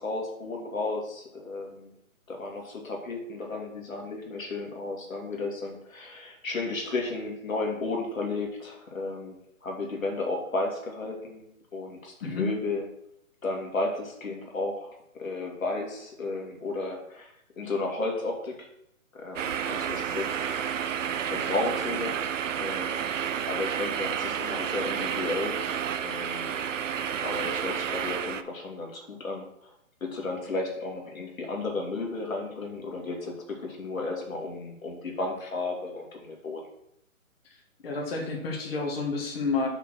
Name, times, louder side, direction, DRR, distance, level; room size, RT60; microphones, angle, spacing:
voice 1, 0.0-1.9 2.3-9.4 9.6-11.4 11.7-12.8 13.4-18.7 19.1-23.2 23.5-25.6 26.0-26.6 27.2-29.5 30.0-36.6, left 2 dB, 70° left, 1 dB, 2.3 m, -33 dB
sound 1, 19.4-28.4, right 8 dB, 65° right, 0.6 m, -30 dB
voice 2, 37.8-39.7, left 4 dB, 45° left, -1 dB, 1.7 m, -29 dB
5.6 x 4.4 x 6.2 m, 0.77 s
hypercardioid pair, 145°, 41 cm